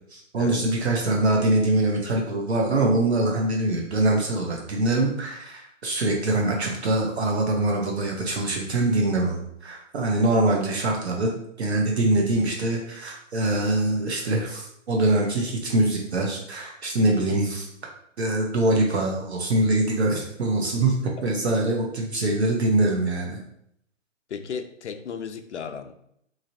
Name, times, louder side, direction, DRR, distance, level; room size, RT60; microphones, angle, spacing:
voice 1, 0.1-11.3 11.6-17.7 18.2-20.9 21.2-23.4, right 2 dB, 55° right, 0 dB, 0.8 m, -23 dB
voice 2, 24.3-25.9, left 6 dB, 60° left, 8 dB, 0.5 m, -34 dB
3.9 x 3.1 x 2.7 m, 0.73 s
hypercardioid pair, 160°, 39 cm